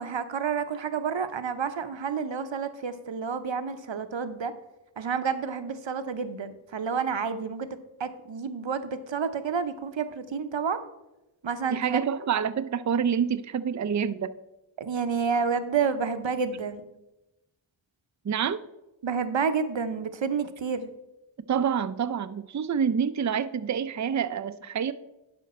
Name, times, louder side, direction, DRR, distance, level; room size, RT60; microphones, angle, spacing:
voice 1, 0.0-4.5 5.0-7.7 8.0-10.8 11.4-11.8 14.8-16.8 19.0-20.9, right 6 dB, 65° right, 10 dB, 0.8 m, -29 dB
voice 2, 11.7-14.3 18.2-18.6 21.5-24.9, right 7 dB, 40° right, 13 dB, 0.5 m, -27 dB
11.5 x 5.1 x 4.2 m, 0.96 s
wide cardioid pair, 40°, 48 cm